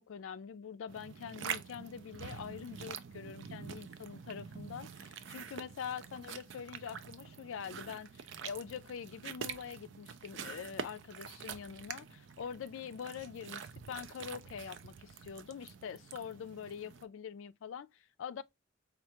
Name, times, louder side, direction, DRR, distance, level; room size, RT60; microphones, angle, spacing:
voice 1, 0.1-18.4, left 7 dB, 80° left, 0.4 m, -44 dB
sound 1, 0.9-17.0, right 7 dB, 65° right, 0.4 m, -46 dB
4.4 x 2.4 x 2.8 m
head